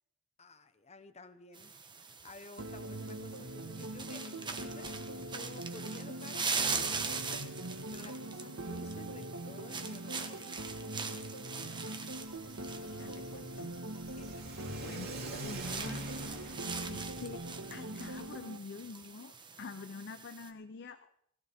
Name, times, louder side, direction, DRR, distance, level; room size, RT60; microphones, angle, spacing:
voice 1, 0.4-1.7 2.2-7.4 7.9-10.7 14.1-14.3, left 3 dB, 30° left, 10 dB, 1.0 m, -53 dB
sound 1, 1.5-20.5, right 5 dB, 20° right, 1.2 m, -42 dB
sound 2, 2.6-18.6, right 1 dB, 85° right, 1.6 m, -42 dB
Car / Accelerating revving vroom, 12.1-18.3, right 2 dB, 50° right, 2.9 m, -47 dB
voice 2, 12.7-13.8 14.6-16.0 16.3-17.4 17.7-21.1, left 4 dB, 55° left, 10 dB, 0.6 m, -47 dB
19.5 x 15.0 x 3.6 m, 0.72 s
head